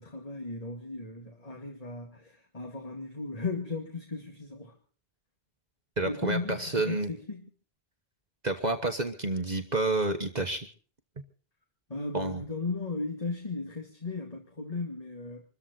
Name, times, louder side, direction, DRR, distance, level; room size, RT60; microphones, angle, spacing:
voice 1, 0.0-4.8 6.0-7.5 11.9-15.4, left 3 dB, 35° left, 3 dB, 2.3 m, -36 dB
voice 2, 6.0-7.1 8.4-10.7 12.1-12.4, right 2 dB, 40° right, 7 dB, 1.4 m, -29 dB
25.5 x 14.0 x 4.0 m, 0.40 s
omnidirectional pair, 1.1 m